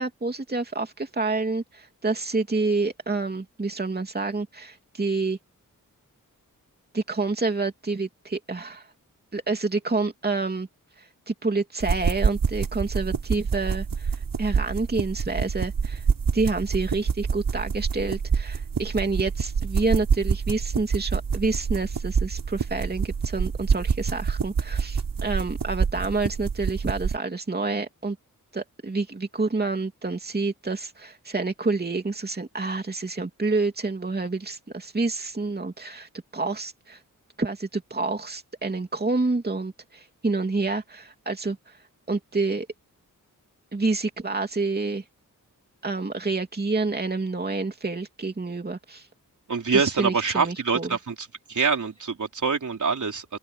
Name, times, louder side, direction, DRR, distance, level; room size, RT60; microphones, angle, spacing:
voice 1, 0.0-5.4 6.9-8.9 9.3-10.7 11.0-16.0 16.3-28.2 28.5-37.0 37.4-41.8 42.1-42.7 43.7-45.0 45.8-49.1 49.7-51.0, right 3 dB, 30° right, 2.9 m, -28 dB
sound 1, 11.8-27.2, right 6 dB, 80° right, 4.2 m, -27 dB
voice 2, 49.5-53.3, right 5 dB, 65° right, 3.8 m, -25 dB
open air
wide cardioid pair, 115°, 33 cm